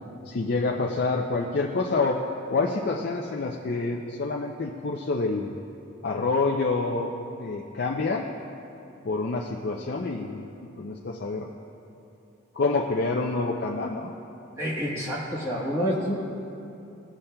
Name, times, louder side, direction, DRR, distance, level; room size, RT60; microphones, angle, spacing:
voice 1, 0.3-2.2 2.5-5.6 6.0-7.1 7.4-8.3 9.0-10.5 10.8-11.5 12.5-14.1, left 3 dB, 50° left, 0 dB, 0.4 m, -27 dB
voice 2, 14.6-16.1, equal, 15° right, -6 dB, 1.1 m, -28 dB
16.0 x 7.0 x 2.2 m, 2.7 s
head